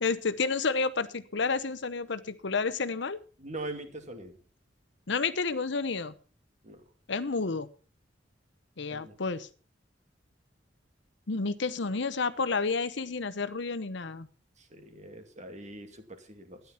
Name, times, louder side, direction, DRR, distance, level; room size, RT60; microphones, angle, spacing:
voice 1, 0.0-3.2 5.1-6.1 7.1-7.7 8.8-9.5 11.3-14.3, left 4 dB, 70° left, 14 dB, 0.9 m, -30 dB
voice 2, 3.4-4.4 6.6-6.8 8.9-9.2 14.6-16.6, right 2 dB, 40° right, 6 dB, 2.4 m, -42 dB
13.0 x 10.5 x 5.7 m, 0.38 s
head